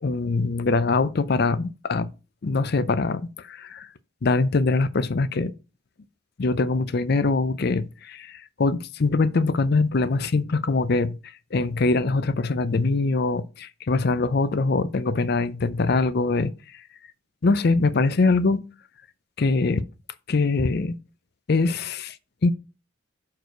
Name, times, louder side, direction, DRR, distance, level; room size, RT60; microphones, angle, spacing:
voice 1, 0.0-2.1 2.4-3.9 4.2-5.5 6.4-11.2 11.5-16.5 17.4-18.6 19.4-19.8 20.3-21.0 21.5-22.2 22.4-22.5, left 3 dB, 50° left, 0.5 m, -23 dB
6.4 x 4.7 x 4.5 m
head